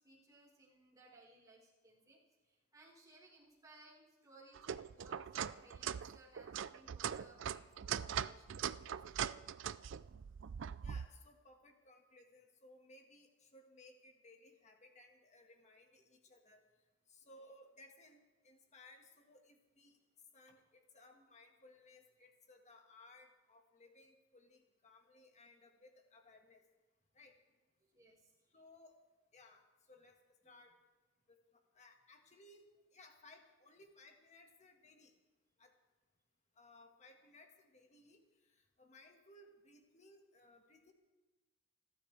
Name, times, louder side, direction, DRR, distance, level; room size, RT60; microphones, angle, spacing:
voice 1, 0.0-2.2 2.4-9.2 17.2-17.3 21.1-21.3 27.9-28.3 30.4-30.5, right 2 dB, 20° right, -5 dB, 4.4 m, -63 dB
sound 1, 4.5-11.1, right 8 dB, 65° right, 0.4 m, -41 dB
voice 2, 10.8-16.6 17.1-20.0 20.3-26.6 27.1-27.3 28.5-29.0 29.3-30.2 30.4-30.8 31.3-31.4 31.7-35.1 35.6-35.7 36.6-40.9, left 2 dB, 35° left, 3 dB, 1.8 m, -62 dB
29.0 x 12.5 x 3.4 m, 1.2 s
head